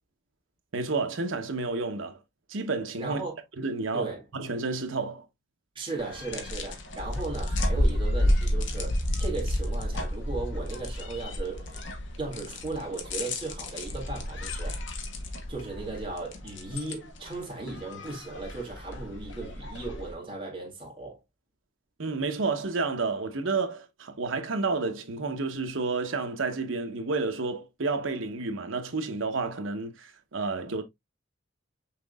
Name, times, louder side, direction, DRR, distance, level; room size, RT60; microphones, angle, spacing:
voice 1, 0.7-2.2 2.5-3.2 3.6-5.2 22.0-30.8, right 3 dB, 80° right, 0.9 m, -30 dB
voice 2, 3.0-3.4 3.9-4.2 5.8-11.8 12.2-14.8 15.5-21.2, right 3 dB, 25° right, 2.1 m, -36 dB
sound 1, 6.0-20.1, left 1 dB, 65° left, 1.0 m, -31 dB
5.9 x 3.6 x 2.3 m
head